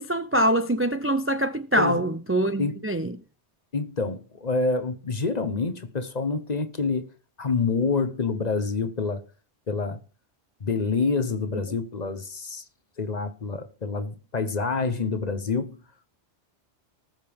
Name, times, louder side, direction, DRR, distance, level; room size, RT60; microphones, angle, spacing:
voice 1, 0.0-3.1, right 1 dB, 20° right, 0.3 m, -24 dB
voice 2, 3.7-7.1 7.4-9.2 9.7-10.0 10.6-12.6 13.0-15.8, left 4 dB, 40° left, 1.0 m, -27 dB
19.5 x 6.6 x 3.5 m
omnidirectional pair, 1.2 m